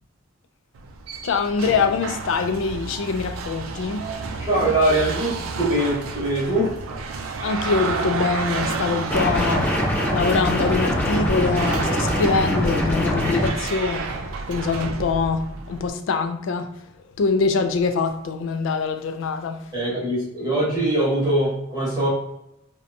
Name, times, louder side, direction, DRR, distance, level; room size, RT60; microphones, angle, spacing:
sound 1, 0.8-15.9, right 4 dB, 90° right, 0.4 m, -31 dB
voice 1, 1.2-4.2 7.4-9.8 10.1-14.1 14.5-16.8 17.2-19.7, left 4 dB, 70° left, 0.3 m, -24 dB
voice 2, 4.4-6.8 19.7-22.1, right 1 dB, 20° right, 1.0 m, -22 dB
sound 2, 9.1-13.5, equal, 10° left, 0.5 m, -23 dB
2.7 x 2.2 x 2.5 m
head